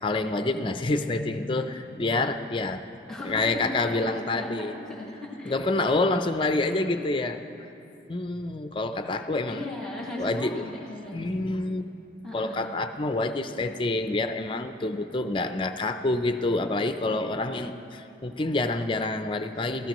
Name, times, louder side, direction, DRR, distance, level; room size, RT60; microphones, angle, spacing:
voice 1, 0.0-2.8 3.2-4.7 5.4-7.4 8.1-9.6 10.2-10.7 11.1-11.9 12.3-19.9, left 2 dB, 25° left, 8 dB, 0.5 m, -27 dB
voice 2, 3.1-5.5 6.9-7.1 9.4-11.3 12.2-12.6 13.5-13.7, left 2 dB, 5° left, -4 dB, 1.6 m, -37 dB
23.5 x 15.0 x 3.0 m, 2.8 s
head